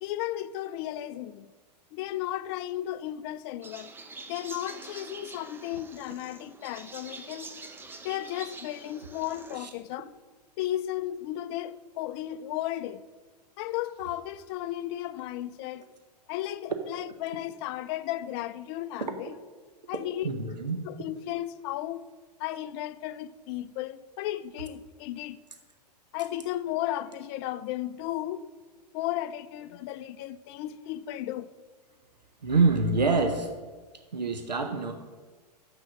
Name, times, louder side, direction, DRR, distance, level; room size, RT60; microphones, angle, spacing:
voice 1, 0.0-1.5 1.9-3.9 4.3-7.5 8.0-10.1 10.6-13.0 13.6-15.8 16.3-19.3 19.9-20.3 20.8-22.1 22.4-25.4 26.1-28.4 28.9-31.5, left 13 dB, 40° left, 0.4 m, -34 dB
sound 1, 3.6-9.6, right 3 dB, 10° right, 0.6 m, -45 dB
voice 2, 20.2-20.8 32.4-33.5 34.1-34.9, right 3 dB, 90° right, 0.9 m, -25 dB
6.8 x 6.3 x 7.4 m
hypercardioid pair, 105°, 21 cm